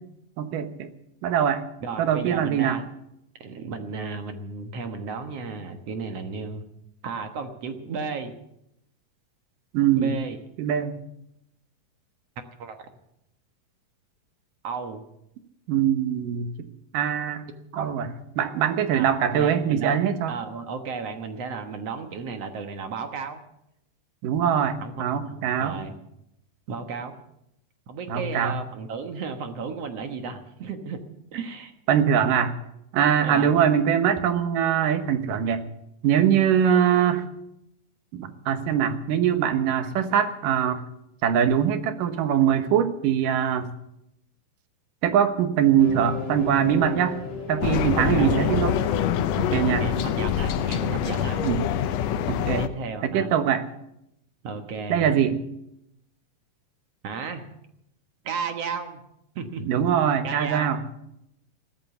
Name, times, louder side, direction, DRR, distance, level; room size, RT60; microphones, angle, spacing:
voice 1, 0.4-0.9 1.2-1.6 2.0-2.8 9.7-10.1 10.6-11.0 15.7-16.7 16.9-17.4 17.8-18.1 18.4-20.3 24.2-25.8 28.1-28.6 31.9-32.5 32.9-35.6 36.0-37.2 38.1-40.8 41.2-43.7 45.0-47.2 47.5-48.8 49.4-49.9 51.4-51.6 52.3-52.6 53.0-53.6 54.9-55.4 59.7-60.8, right 9 dB, 85° right, 9 dB, 2.9 m, -22 dB
voice 2, 1.8-2.9 3.4-6.6 7.0-8.3 9.9-10.4 12.6-12.9 14.6-15.0 17.7-17.9 18.9-20.0 20.3-23.4 24.8-26.0 26.7-27.2 27.9-31.0 31.3-31.7 33.2-33.6 47.9-48.5 49.8-51.4 52.6-53.3 54.4-55.1 57.0-57.5 58.2-59.0 59.4-59.7 60.2-60.8, right 5 dB, 60° right, 6 dB, 2.1 m, -34 dB
sound 1, 45.8-51.3, left 4 dB, 40° left, 2.0 m, -37 dB
sound 2, 47.6-52.7, left 9 dB, 70° left, 1.6 m, -25 dB
16.0 x 13.0 x 7.0 m, 0.80 s
omnidirectional pair, 3.7 m